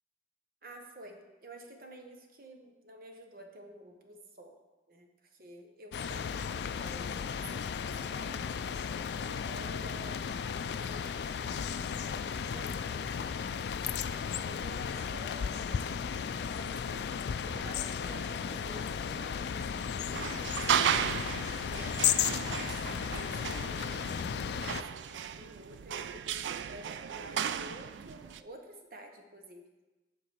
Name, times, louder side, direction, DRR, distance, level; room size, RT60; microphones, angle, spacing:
voice 1, 0.6-4.6 4.9-8.6 9.1-13.2 13.8-15.7 16.3-17.1 17.4-21.1 21.7-29.6, equal, 50° right, 3 dB, 1.0 m, -51 dB
sound 1, 5.9-24.8, left 7 dB, 70° left, 0.3 m, -35 dB
sound 2, 14.3-19.2, equal, 10° left, 2.0 m, -57 dB
sound 3, 20.1-28.4, right 8 dB, 90° right, 0.3 m, -35 dB
8.6 x 3.9 x 6.7 m, 1.1 s
head